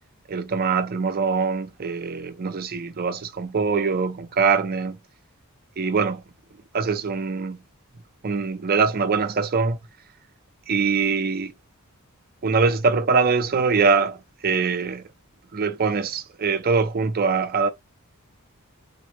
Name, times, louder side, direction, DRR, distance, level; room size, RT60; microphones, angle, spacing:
voice 1, 0.3-5.0 5.8-6.2 6.7-7.6 8.2-9.8 10.7-11.5 12.4-15.0 15.5-17.7, right 5 dB, 45° right, 0.5 m, -23 dB
3.8 x 2.0 x 3.1 m
head